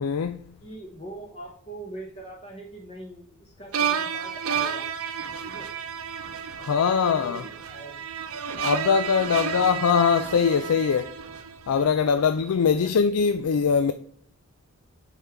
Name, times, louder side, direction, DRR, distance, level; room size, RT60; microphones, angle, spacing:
voice 1, 0.0-0.4 6.6-7.4 8.6-11.1 11.7-13.9, left 6 dB, 80° left, 0.4 m, -22 dB
voice 2, 0.6-4.9 5.4-5.7 7.0-8.0 12.7-12.9, right 1 dB, 30° left, 0.9 m, -42 dB
sound 1, 3.7-11.9, right 7 dB, 75° right, 0.7 m, -31 dB
9.1 x 3.8 x 4.5 m
head